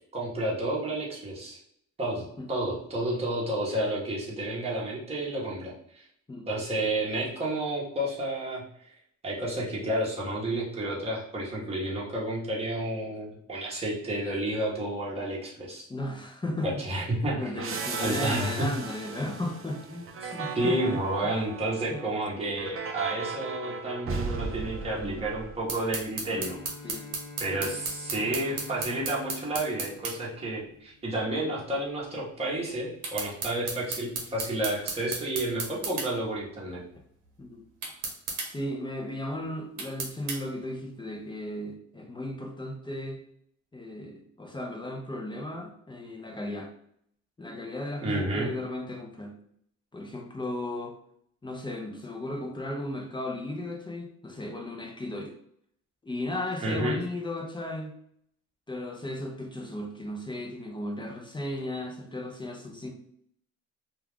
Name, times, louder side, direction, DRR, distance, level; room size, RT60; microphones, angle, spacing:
voice 1, 0.1-1.6 2.0-6.1 6.5-8.6 9.2-15.9 16.6-17.4 18.0-18.7 20.2-26.7 27.4-36.8 48.0-48.5 56.6-57.0, right 1 dB, 20° right, -5 dB, 0.9 m, -31 dB
voice 2, 15.9-17.0 17.4-21.0 21.9-22.0 24.9-25.2 26.8-27.1 27.6-27.7 37.4-37.6 38.5-43.2 43.7-46.7 47.4-49.4 49.9-51.0 51.4-55.3 56.0-57.9 58.7-62.9, left 1 dB, 15° left, 1 dB, 0.5 m, -35 dB
sound 1, 17.6-26.0, right 4 dB, 45° right, 0.5 m, -37 dB
sound 2, 25.7-30.2 33.0-36.1 37.8-38.5 39.8-40.4, right 4 dB, 85° right, 0.9 m, -33 dB
Bowed string instrument, 26.3-31.1, left 3 dB, 65° left, 0.8 m, -46 dB
2.4 x 2.3 x 3.4 m, 0.69 s
cardioid pair, 90°, 30 cm